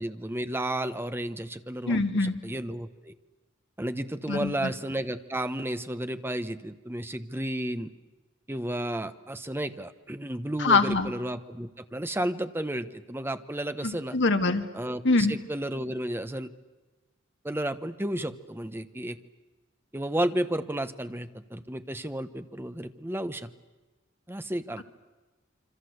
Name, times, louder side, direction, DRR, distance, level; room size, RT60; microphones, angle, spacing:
voice 1, 0.0-3.1 3.8-7.9 8.5-14.2 14.7-16.5 17.4-19.2 19.9-23.5 24.3-24.8, right 1 dB, 10° right, 10 dB, 1.0 m, -32 dB
voice 2, 1.9-2.4 4.3-4.7 10.6-11.1 13.8-14.6 15.0-15.3, left 3 dB, 65° left, 6 dB, 2.0 m, -24 dB
26.5 x 25.0 x 8.0 m, 1.2 s
head